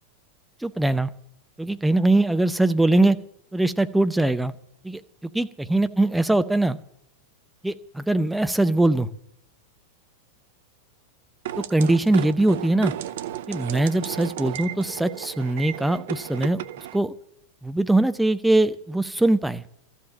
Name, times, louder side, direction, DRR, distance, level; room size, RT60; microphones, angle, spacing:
voice 1, 0.6-1.1 1.6-3.2 3.5-4.5 4.8-6.8 7.6-9.1 11.6-12.9 13.5-16.6 16.9-17.1 17.6-19.6, right 2 dB, 5° right, 10 dB, 0.7 m, -22 dB
sound 1, 11.5-17.0, right 12 dB, 55° right, 0.6 m, -34 dB
13.5 x 7.7 x 8.4 m, 0.71 s
figure-of-eight pair, 90°, 0 cm